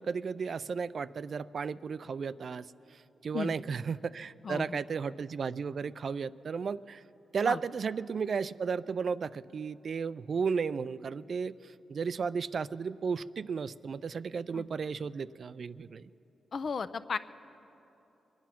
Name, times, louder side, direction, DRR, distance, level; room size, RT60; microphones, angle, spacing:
voice 1, 0.0-2.7 3.2-7.0 7.3-11.5 11.9-16.1, right 5 dB, 55° right, 16 dB, 0.3 m, -34 dB
voice 2, 4.4-4.8 7.4-7.6 14.5-14.7 16.5-17.2, left 5 dB, 55° left, 13 dB, 0.5 m, -34 dB
23.5 x 9.5 x 5.8 m, 3.0 s
cardioid pair, 85°, 0 cm